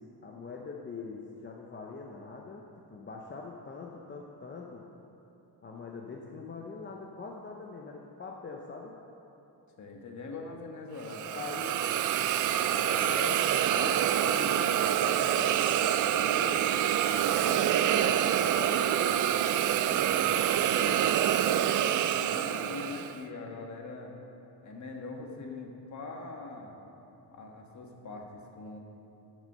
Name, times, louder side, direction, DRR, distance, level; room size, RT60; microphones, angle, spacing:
voice 1, 0.2-4.8 5.6-8.9 11.3-12.0 12.7-16.8 17.1-19.2 19.8-21.0, left 4 dB, 25° left, 0 dB, 0.8 m, -43 dB
voice 2, 9.8-11.5 20.1-20.4 22.0-24.1 24.6-26.8 27.3-28.8, left 3 dB, 40° left, 1 dB, 1.5 m, -42 dB
Hiss, 11.1-23.2, right 10 dB, 50° right, 0.4 m, -26 dB
12.0 x 6.2 x 6.7 m, 2.9 s
cardioid pair, 125°, 42 cm